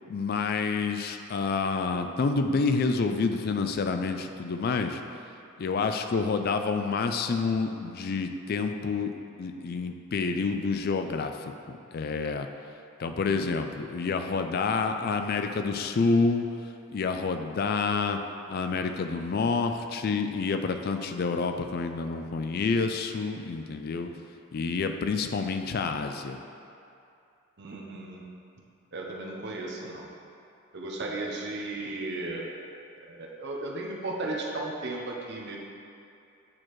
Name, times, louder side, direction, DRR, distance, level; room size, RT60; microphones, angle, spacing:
voice 1, 0.1-5.0 5.6-9.1 9.4-11.4 11.7-12.5 13.0-16.5 16.9-18.2 18.5-24.1 24.5-26.4, left 4 dB, 45° left, 6 dB, 0.3 m, -28 dB
voice 2, 27.6-28.3 28.9-30.1 30.7-32.5 33.0-35.6, right 2 dB, 55° right, -1 dB, 0.6 m, -35 dB
8.6 x 4.3 x 3.1 m, 2.6 s
head